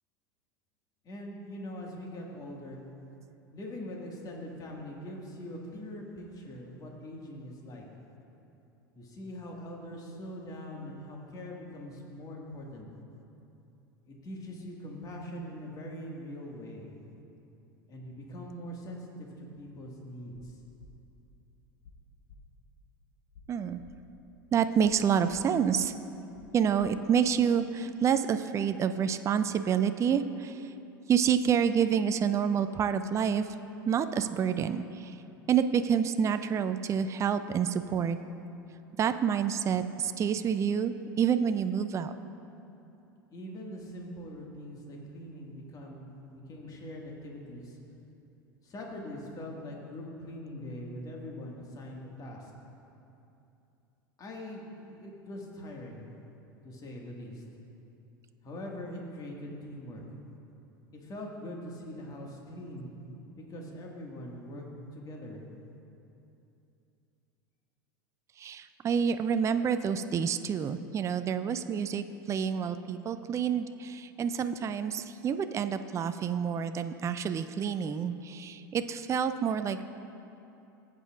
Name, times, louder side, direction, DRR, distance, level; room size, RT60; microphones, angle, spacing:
voice 1, 1.0-2.8 3.5-7.9 8.9-12.9 14.1-16.9 17.9-20.6 43.3-47.8 48.6-52.5 54.2-56.0 56.6-57.4 58.4-60.0 60.9-62.9 63.4-64.6 64.9-65.4, left 1 dB, 35° left, -1 dB, 1.8 m, -42 dB
sound 1, 20.3-20.5 20.8-20.9 21.8-21.9 22.3-22.4 23.3-23.4 23.8-23.9 24.8-24.9 25.3-25.4 26.3-26.5 26.8-26.9, left 4 dB, 65° left, 1.1 m, -52 dB
voice 2, 23.5-23.8 24.5-25.9 26.5-30.7 31.1-33.5 33.9-35.2 35.5-38.2 39.0-42.1 68.4-79.9, right 7 dB, 25° right, 10 dB, 0.4 m, -28 dB
16.0 x 8.2 x 2.5 m, 2.8 s
hypercardioid pair, 85°, 11 cm